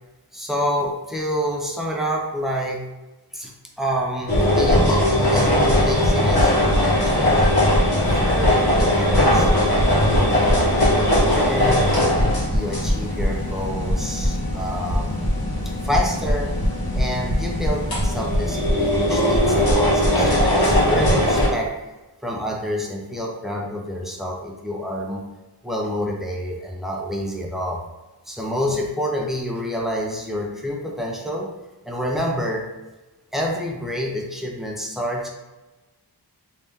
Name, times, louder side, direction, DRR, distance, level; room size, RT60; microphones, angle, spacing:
voice 1, 0.3-2.9 3.3-7.5 8.2-11.9 12.5-15.2 15.8-16.6 16.9-19.6 20.0-21.7 22.2-25.2 25.6-27.8 28.3-31.5 31.8-32.7 33.3-35.3, equal, ahead, -2 dB, 0.6 m, -28 dB
sound 1, 4.3-21.5, left 1 dB, 60° left, 1.1 m, -19 dB
3.3 x 2.8 x 3.5 m, 1.1 s
wide cardioid pair, 80°, 41 cm